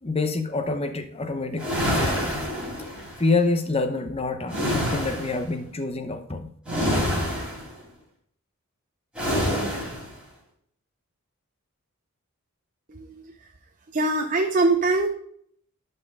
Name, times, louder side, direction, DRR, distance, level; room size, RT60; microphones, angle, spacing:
voice 1, 0.0-2.3 3.2-6.5, left 3 dB, 25° left, 8 dB, 0.8 m, -27 dB
sound 1, 1.6-3.2 4.5-5.4 6.6-7.7 9.1-10.1, equal, 5° right, 4.0 m, -26 dB
voice 2, 12.9-13.5 13.9-15.1, right 2 dB, 35° right, 4 dB, 0.7 m, -23 dB
11.5 x 5.5 x 3.6 m, 0.65 s
head